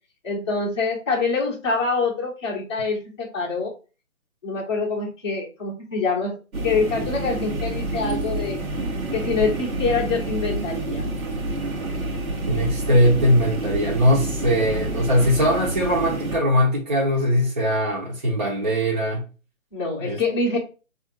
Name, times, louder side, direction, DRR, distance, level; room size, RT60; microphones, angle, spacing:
voice 1, 0.2-3.7 4.4-6.4 6.6-8.6 9.1-11.0 19.7-20.6, left 4 dB, 20° left, 0.6 m, -25 dB
sound 1, 6.5-16.4, right 2 dB, 90° right, 1.0 m, -28 dB
voice 2, 12.5-19.2 20.0-20.2, equal, 30° right, 0.7 m, -20 dB
3.6 x 2.5 x 2.9 m
figure-of-eight pair, 150°, 41 cm